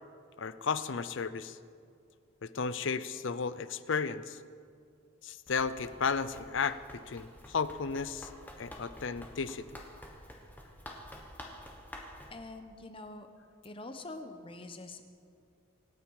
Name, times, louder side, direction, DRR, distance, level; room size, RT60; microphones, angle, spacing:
voice 1, 0.4-1.6 2.4-4.4 5.2-8.3 8.6-9.7, left 5 dB, 65° left, 14 dB, 0.6 m, -34 dB
Run, 5.5-12.4, left 1 dB, 10° left, 1.4 m, -49 dB
voice 2, 12.3-13.3 13.6-15.1, left 2 dB, 25° left, 7 dB, 1.0 m, -45 dB
25.5 x 9.3 x 4.8 m, 2.3 s
head